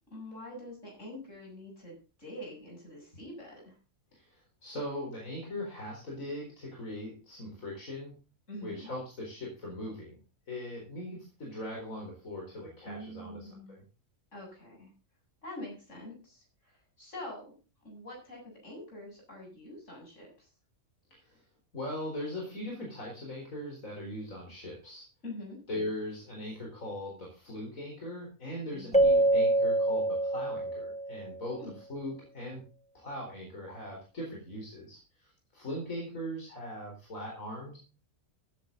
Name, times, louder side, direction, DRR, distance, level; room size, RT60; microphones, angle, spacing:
voice 1, 0.1-3.7 8.5-8.9 12.8-13.8 14.3-14.9 15.4-16.4 17.0-17.5 17.8-20.3 25.2-25.6 28.7-29.0 31.5-31.7, left 1 dB, 65° left, -1 dB, 8.1 m, -45 dB
voice 2, 4.1-8.1 8.6-10.2 10.5-13.8 21.1-21.4 21.7-25.0 25.7-32.6 32.9-37.8, left 1 dB, 85° left, -2 dB, 4.7 m, -40 dB
Keyboard (musical), 28.9-31.4, right 2 dB, 5° left, 0.6 m, -25 dB
15.5 x 10.5 x 4.0 m, 0.34 s
omnidirectional pair, 1.4 m